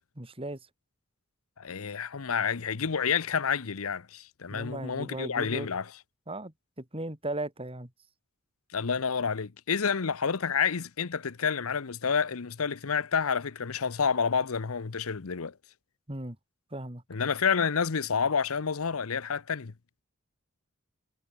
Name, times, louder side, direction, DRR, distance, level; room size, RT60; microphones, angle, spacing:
voice 1, 0.2-0.6 4.5-5.7 6.3-7.9 16.1-16.4 16.7-17.0, right 1 dB, 25° right, 2.6 m, -37 dB
voice 2, 1.6-5.9 8.7-15.5 17.1-19.7, left 6 dB, 85° left, 0.8 m, -29 dB
head